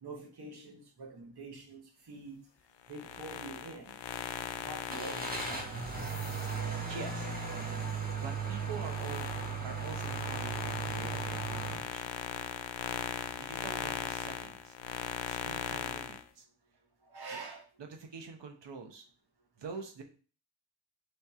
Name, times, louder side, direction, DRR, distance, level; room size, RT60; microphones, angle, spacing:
voice 1, 0.0-1.8 2.1-2.4 2.9-3.9 4.6-5.7 17.1-17.6, right 3 dB, 65° right, 2 dB, 1.2 m, -45 dB
sound 1, 2.8-7.9 8.4-16.2, left 9 dB, 85° left, 0.5 m, -39 dB
Car / Engine starting, 4.9-11.7, right 5 dB, 20° right, 1.1 m, -37 dB
voice 2, 6.8-7.3 8.2-9.3 9.6-12.2 13.4-14.8 15.3-16.5 17.8-19.0 19.6-20.0, right 5 dB, 85° right, 4 dB, 1.0 m, -46 dB
3.4 x 3.3 x 4.2 m, 0.39 s
cardioid pair, 70°, 42 cm